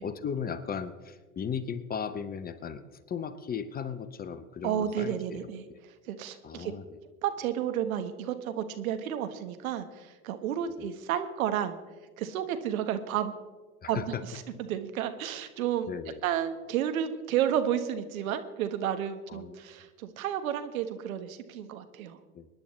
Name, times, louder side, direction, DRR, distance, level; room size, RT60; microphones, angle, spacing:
voice 1, 0.0-5.4 5.7-5.8 6.4-7.0 10.8-10.9 13.8-14.2 15.9-16.2 19.3-19.6 22.3-22.5, left 7 dB, 20° left, 12 dB, 0.8 m, -36 dB
voice 2, 4.6-5.6 6.1-6.7 7.2-11.8 12.2-13.3 13.9-15.9 16.2-22.2, right 10 dB, 70° right, 9 dB, 1.4 m, -31 dB
23.5 x 10.5 x 3.2 m, 1.3 s
hypercardioid pair, 95°, 43 cm